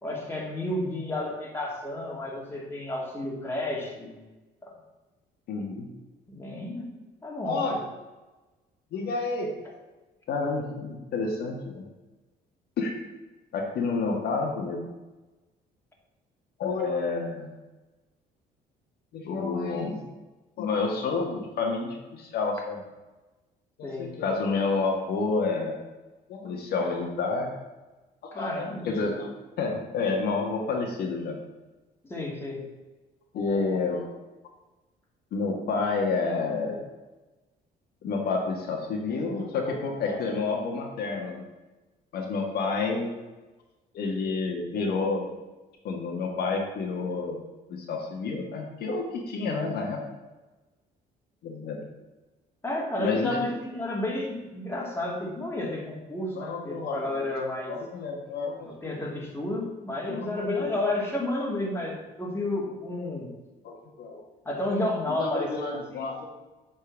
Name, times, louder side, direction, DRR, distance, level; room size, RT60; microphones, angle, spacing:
voice 1, 0.0-4.2 4.6-4.7 6.3-6.9 7.2-7.8 23.8-24.1 28.3-28.9 32.0-32.6 52.6-57.7 58.6-63.3 64.4-66.0, left 1 dB, 15° left, -2 dB, 2.4 m, -31 dB
voice 2, 5.5-5.8 7.4-7.8 8.9-9.5 10.3-11.8 12.8-12.9 13.5-14.8 16.6-17.5 19.1-20.0 20.6-22.8 23.8-25.8 26.3-27.5 28.4-28.5 28.8-29.3 29.6-31.4 33.3-34.1 35.3-36.8 38.0-41.4 42.1-43.1 43.9-45.3 45.8-47.4 47.7-50.0 51.4-51.8 53.0-53.4 56.3-57.1 57.7-59.0 60.1-60.7 63.6-64.2 65.1-66.3, left 4 dB, 70° left, 0 dB, 1.7 m, -29 dB
8.6 x 4.5 x 7.1 m, 1.1 s
cardioid pair, 110°, 17 cm